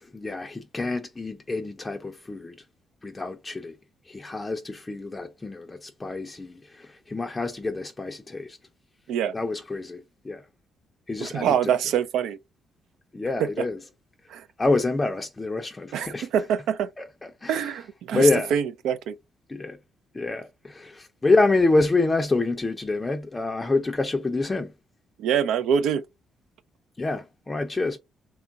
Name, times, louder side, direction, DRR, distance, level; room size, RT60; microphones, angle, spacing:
voice 1, 0.1-2.7 3.0-3.8 4.0-8.6 9.3-10.5 11.1-11.7 13.1-13.8 14.6-16.3 17.0-17.8 18.1-18.5 19.5-19.8 20.1-24.7 27.0-28.0, left 3 dB, 20° left, 0.4 m, -27 dB
voice 2, 11.2-12.4 13.4-13.5 14.3-14.5 15.9-16.1 16.3-16.9 17.5-19.2 25.2-26.0, right 8 dB, 85° right, 0.3 m, -25 dB
2.9 x 2.3 x 2.6 m
cardioid pair, 90°, 0 cm